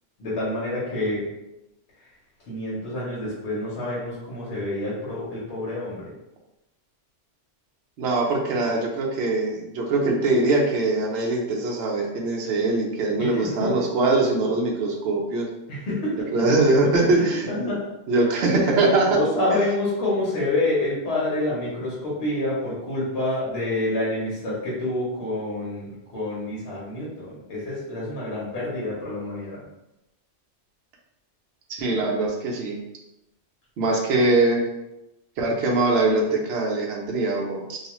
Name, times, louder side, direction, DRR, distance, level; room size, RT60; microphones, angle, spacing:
voice 1, 0.2-1.3 2.5-6.1 13.2-13.8 15.7-16.5 17.5-17.9 19.1-29.6, left 2 dB, 60° left, -7 dB, 1.1 m, -28 dB
voice 2, 8.0-15.5 16.3-17.7 18.1-19.2 31.8-32.8 33.8-34.6 35.4-37.8, right 2 dB, 65° right, -1 dB, 0.8 m, -22 dB
2.4 x 2.3 x 2.9 m, 0.91 s
omnidirectional pair, 1.2 m